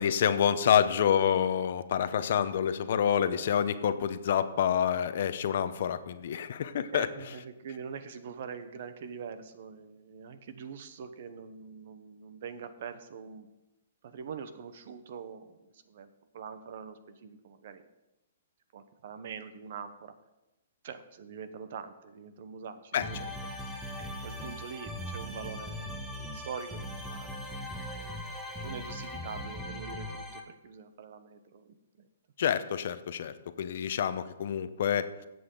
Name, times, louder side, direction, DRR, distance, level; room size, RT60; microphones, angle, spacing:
voice 1, 0.0-7.1 22.9-23.3 32.4-35.1, left 9 dB, 55° left, 12 dB, 0.7 m, -27 dB
voice 2, 6.9-13.5 14.0-17.8 18.7-20.1 20.8-23.3 24.0-25.9 26.3-27.9 28.6-32.1, right 6 dB, 55° right, 11 dB, 1.0 m, -44 dB
sound 1, 23.0-30.4, equal, 10° right, 1.3 m, -39 dB
15.0 x 7.9 x 3.9 m, 0.97 s
hypercardioid pair, 155°, 0 cm